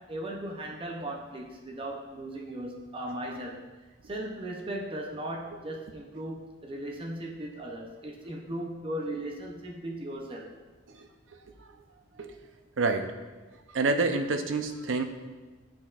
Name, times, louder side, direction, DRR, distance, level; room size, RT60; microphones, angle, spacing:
voice 1, 0.0-3.7 4.0-10.5, right 1 dB, 30° right, 0 dB, 0.6 m, -37 dB
voice 2, 12.8-13.1 13.7-15.0, right 3 dB, 75° right, 6 dB, 0.6 m, -28 dB
10.0 x 4.3 x 2.4 m, 1.3 s
head